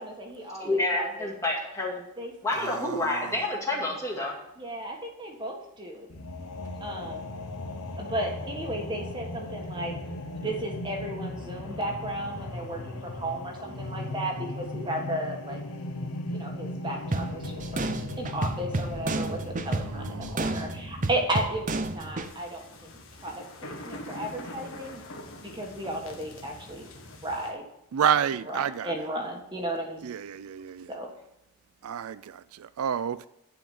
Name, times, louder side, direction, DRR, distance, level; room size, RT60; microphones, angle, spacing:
voice 1, 0.0-1.3 2.2-2.3 4.6-6.1 6.8-7.3 8.0-9.9 10.4-15.6 16.0-17.9 18.2-25.0 25.4-26.9 27.2-27.6 28.1-30.1 30.9-31.1 32.2-32.3, right 1 dB, 20° right, 1 dB, 1.6 m, -34 dB
voice 2, 0.6-2.0 2.4-4.3, left 2 dB, 15° left, -2 dB, 2.3 m, -28 dB
voice 3, 2.6-3.2 19.9-20.3 27.9-28.9 30.0-30.9 31.8-33.3, right 8 dB, 85° right, 16 dB, 0.4 m, -29 dB
sound 1, 6.1-21.1, left 1 dB, 90° left, 1.2 m, -37 dB
sound 2, 17.1-22.3, right 2 dB, 35° right, 0.6 m, -32 dB
sound 3, 22.2-27.5, left 1 dB, 70° left, 1.6 m, -44 dB
10.5 x 5.0 x 7.8 m, 0.83 s
head